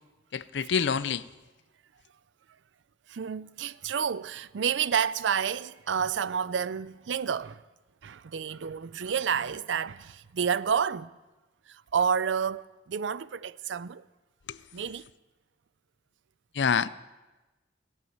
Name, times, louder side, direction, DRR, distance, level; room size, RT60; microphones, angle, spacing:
voice 1, 0.3-1.2 16.6-16.9, left 6 dB, 70° left, 0.5 m, -26 dB
voice 2, 3.1-7.6 8.0-11.1 11.7-14.0 14.7-15.1, right 7 dB, 75° right, 0.5 m, -30 dB
16.5 x 8.3 x 9.2 m
head